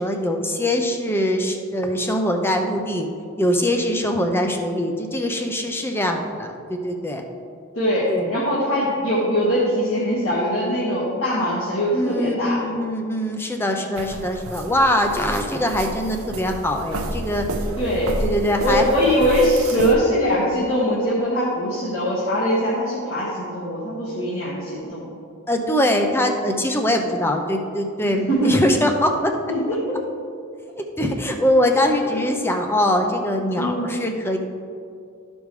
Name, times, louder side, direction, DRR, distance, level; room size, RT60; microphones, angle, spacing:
voice 1, 0.0-3.1 3.4-7.2 8.1-8.4 11.9-17.4 18.2-18.8 19.7-19.9 25.5-29.3 30.8-34.4, left 1 dB, 10° left, 3 dB, 0.6 m, -22 dB
voice 2, 7.7-12.6 17.8-18.2 18.6-25.1 28.1-28.6 29.5-30.0 32.0-32.2 33.5-33.9, equal, 65° left, -9 dB, 1.6 m, -22 dB
sound 1, 14.0-19.9, right 2 dB, 80° right, 0.7 m, -30 dB
13.0 x 5.2 x 3.2 m, 2.4 s
head